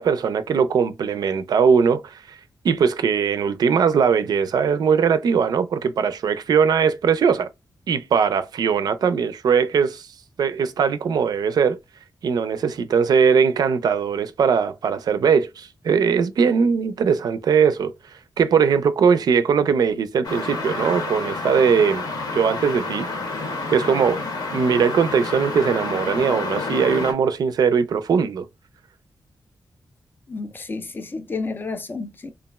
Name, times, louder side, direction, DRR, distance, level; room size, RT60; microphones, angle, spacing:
voice 1, 0.0-2.4 2.6-7.5 7.9-10.1 10.4-11.8 12.2-17.9 18.4-22.0 22.3-23.1 23.7-24.2 24.5-28.5, right 6 dB, 65° right, 0.4 m, -20 dB
sound 1, 20.2-27.1, left 3 dB, 65° left, 0.8 m, -29 dB
voice 2, 30.3-32.3, left 3 dB, 30° left, 0.3 m, -31 dB
2.9 x 2.3 x 2.3 m
wide cardioid pair, 140°, 7 cm